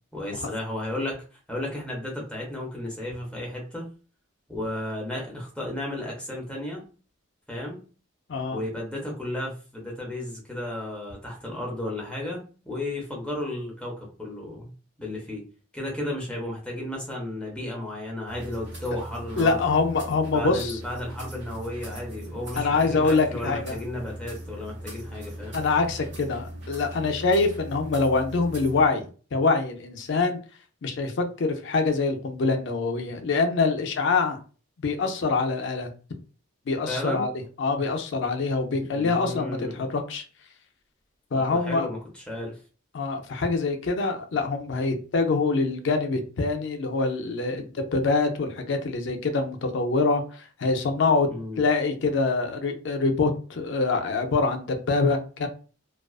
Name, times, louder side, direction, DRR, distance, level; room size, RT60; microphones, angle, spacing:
voice 1, 0.1-1.2 1.5-3.8 4.5-6.9 7.5-7.8 8.5-14.7 15.0-15.4 15.7-19.6 20.3-25.6 36.9-37.2 38.9-39.8 41.3-42.6 51.3-51.6, left 1 dB, 5° left, -2 dB, 0.6 m, -33 dB
voice 2, 8.3-8.6 19.4-20.8 22.6-23.8 25.5-30.4 30.8-34.4 34.8-35.9 36.7-37.3 37.6-40.2 41.3-41.9 42.9-51.3 51.6-55.5, left 3 dB, 60° left, 5 dB, 0.4 m, -25 dB
sound 1, 18.3-28.9, right 1 dB, 60° right, 1.2 m, -39 dB
2.3 x 2.3 x 2.3 m, 0.37 s
head